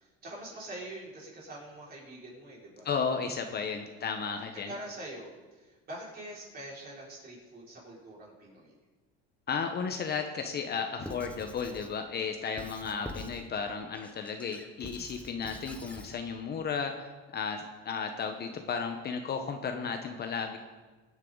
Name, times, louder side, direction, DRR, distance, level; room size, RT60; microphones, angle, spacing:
voice 1, 0.0-2.9 3.8-4.2 4.7-8.7, right 1 dB, 30° right, -4 dB, 5.4 m, -45 dB
voice 2, 2.8-4.7 9.5-20.6, left 5 dB, 35° left, 5 dB, 1.1 m, -34 dB
Squeak / Writing, 11.0-12.0 12.6-13.5 13.9-16.1, left 1 dB, 5° left, 1.0 m, -45 dB
22.5 x 9.7 x 4.0 m, 1.3 s
cardioid pair, 135°, 30 cm